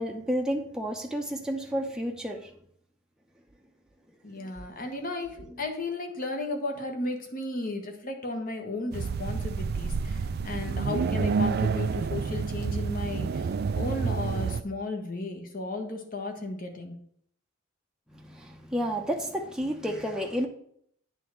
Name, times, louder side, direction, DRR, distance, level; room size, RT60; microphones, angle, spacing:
voice 1, 0.0-2.5 18.1-20.5, equal, 5° right, 0.7 m, -31 dB
voice 2, 4.2-16.9, left 2 dB, 45° left, 1.3 m, -34 dB
sound 1, 8.9-14.6, right 5 dB, 55° right, 0.4 m, -29 dB
8.9 x 3.5 x 6.5 m
head